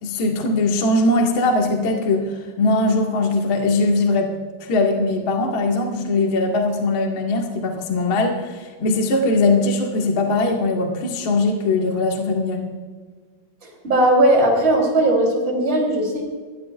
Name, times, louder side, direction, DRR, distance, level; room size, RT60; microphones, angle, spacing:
voice 1, 0.0-4.3 4.6-12.7, left 2 dB, 60° left, 0 dB, 1.3 m, -20 dB
voice 2, 13.8-16.2, right 1 dB, 15° right, -2 dB, 3.3 m, -17 dB
21.0 x 15.5 x 2.5 m, 1.5 s
omnidirectional pair, 5.7 m